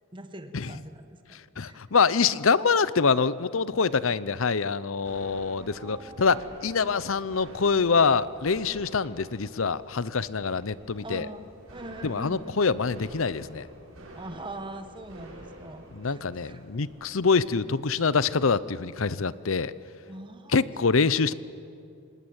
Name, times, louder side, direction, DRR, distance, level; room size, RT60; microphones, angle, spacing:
voice 1, 0.1-1.8 5.6-6.4 11.0-12.6 14.1-16.7 20.1-20.6, right 1 dB, 25° right, 8 dB, 1.4 m, -43 dB
voice 2, 1.6-11.3 12.0-13.7 15.9-19.7 20.5-21.3, left 5 dB, 70° left, 17 dB, 0.7 m, -25 dB
sound 1, 5.0-18.4, right 1 dB, 85° right, 6.9 m, -48 dB
25.5 x 20.5 x 8.8 m, 2.5 s
head